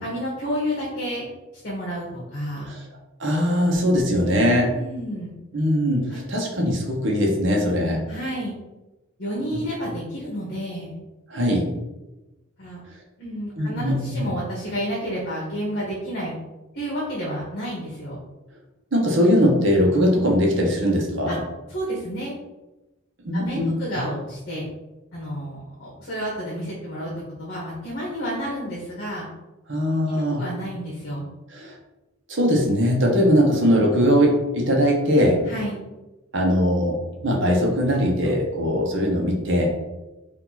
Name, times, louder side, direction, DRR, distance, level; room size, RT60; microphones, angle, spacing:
voice 1, 0.0-1.3 1.6-2.7 4.7-5.3 6.1-6.2 8.1-8.5 9.2-10.9 12.6-12.8 13.2-16.3 16.7-18.2 21.3-21.4 21.7-22.3 23.3-24.6 25.1-27.1 27.4-29.3 30.1-31.3 35.5-35.8, equal, 55° left, -6 dB, 1.4 m, -30 dB
voice 2, 3.2-4.8 5.5-8.0 11.3-11.7 13.6-14.3 18.9-21.4 23.2-23.7 29.7-30.5 31.5-31.8 32.3-35.4 36.3-39.7, equal, 60° right, 0 dB, 1.0 m, -20 dB
4.6 x 2.7 x 4.1 m, 1.0 s
head